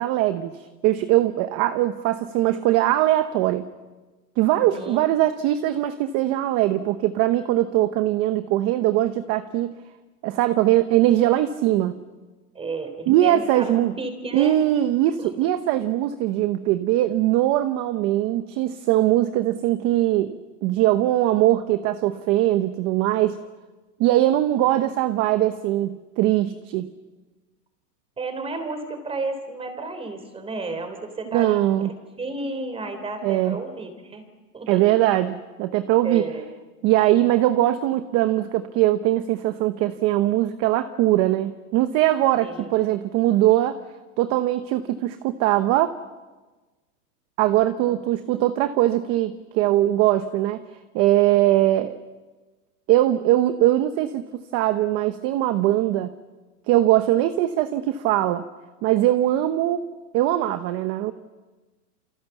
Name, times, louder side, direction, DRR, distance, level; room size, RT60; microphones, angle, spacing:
voice 1, 0.0-3.7 4.4-9.7 10.2-12.0 13.1-13.9 14.3-23.4 24.0-26.9 31.3-31.9 33.2-33.6 34.7-36.2 36.8-43.8 44.2-46.0 47.4-50.6 50.9-52.0 52.9-56.1 56.7-58.4 58.8-59.8 60.1-61.1, right 14 dB, 30° right, 10 dB, 1.0 m, -21 dB
voice 2, 4.5-5.0 12.5-14.6 15.2-15.3 28.2-31.6 32.2-34.3 34.5-34.8 36.0-36.5 42.4-42.7 47.9-48.0 48.3-48.4, right 3 dB, 10° right, 8 dB, 3.7 m, -32 dB
29.0 x 25.5 x 7.2 m, 1.3 s
supercardioid pair, 150°, 47 cm